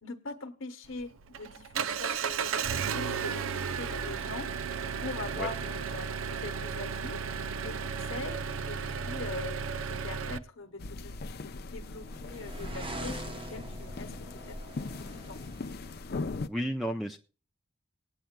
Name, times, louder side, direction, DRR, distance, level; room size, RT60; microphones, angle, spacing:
voice 1, 0.0-4.5 5.0-7.2 7.6-9.6 9.9-14.2 14.5-15.4, left 3 dB, 70° left, 1.1 m, -42 dB
Engine, 0.9-10.4, right 6 dB, 80° right, 0.5 m, -34 dB
sound 1, 10.8-16.5, left 3 dB, 50° left, 0.5 m, -39 dB
sound 2, 11.1-16.0, right 1 dB, 25° right, 0.8 m, -44 dB
voice 2, 16.4-17.2, equal, ahead, 0.4 m, -32 dB
20.0 x 9.0 x 2.2 m
head